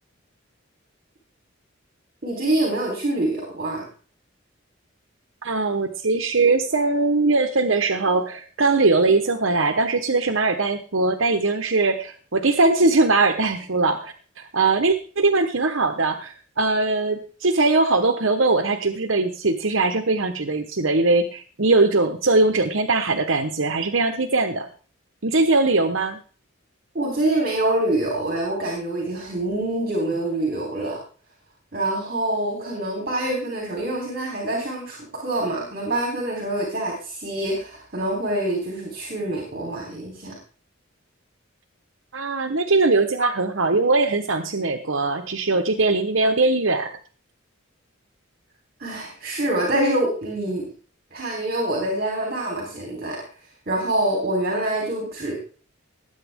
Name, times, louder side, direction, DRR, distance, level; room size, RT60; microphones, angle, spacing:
voice 1, 2.2-3.9 26.9-31.0 31.7-40.4 48.8-50.6 51.1-53.2 53.7-55.3, right 1 dB, 45° right, -1 dB, 3.9 m, -25 dB
voice 2, 5.4-24.7 25.2-26.2 42.1-46.9, right 3 dB, 70° right, 6 dB, 1.1 m, -21 dB
19.0 x 9.0 x 3.7 m, 0.40 s
head